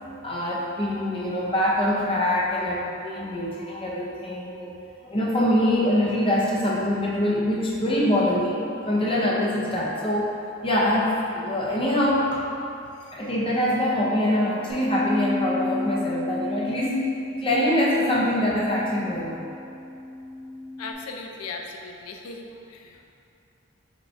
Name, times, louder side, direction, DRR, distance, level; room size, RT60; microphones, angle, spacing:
voice 1, 0.2-4.8 5.0-10.3 10.6-12.4 13.1-19.5, left 1 dB, 25° left, -5 dB, 0.6 m, -24 dB
Bass guitar, 14.7-20.9, left 2 dB, 75° right, 1.4 m, -32 dB
voice 2, 20.8-23.0, left 3 dB, 90° left, 2 dB, 0.4 m, -38 dB
5.1 x 2.4 x 4.3 m, 2.7 s
head